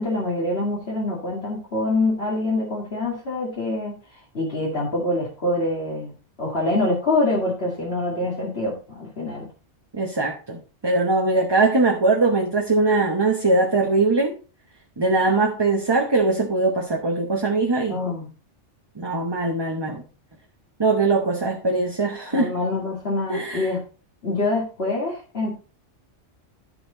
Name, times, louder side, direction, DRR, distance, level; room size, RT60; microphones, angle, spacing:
voice 1, 0.0-3.9 4.3-9.5 17.9-18.3 22.3-23.8 24.2-25.5, left 2 dB, 60° left, -4 dB, 2.5 m, -25 dB
voice 2, 9.9-14.3 15.0-18.0 19.0-20.0 20.8-22.5 23.3-23.7, right 3 dB, 20° right, 0 dB, 1.0 m, -21 dB
13.0 x 4.5 x 3.9 m, 0.35 s
omnidirectional pair, 1.2 m